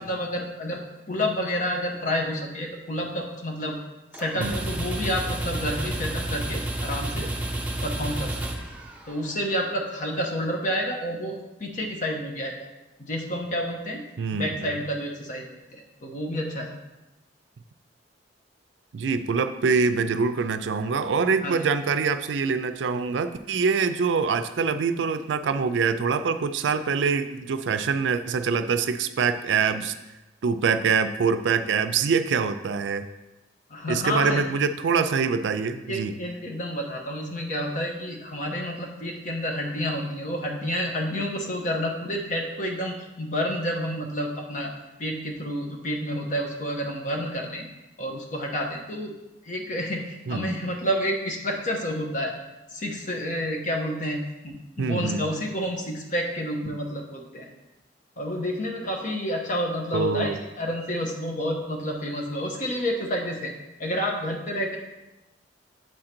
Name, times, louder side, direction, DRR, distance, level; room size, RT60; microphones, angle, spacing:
voice 1, 0.0-3.8 4.1-7.3 7.8-8.7 9.1-12.7 13.0-14.0 14.4-15.4 15.7-16.7 21.4-21.6 33.7-34.4 35.9-44.7 45.0-47.7 48.0-49.1 49.4-52.3 52.7-57.5 58.2-63.5 63.8-64.8, equal, 45° left, 1 dB, 1.1 m, -29 dB
sound 1, 4.1-9.3, right 1 dB, 10° right, 0.7 m, -31 dB
voice 2, 14.2-14.7 18.9-29.9 30.4-33.0 33.9-36.2 50.3-50.5 54.8-55.3 59.9-60.4, right 5 dB, 80° right, 10 dB, 0.4 m, -24 dB
7.7 x 3.8 x 4.4 m, 0.99 s
head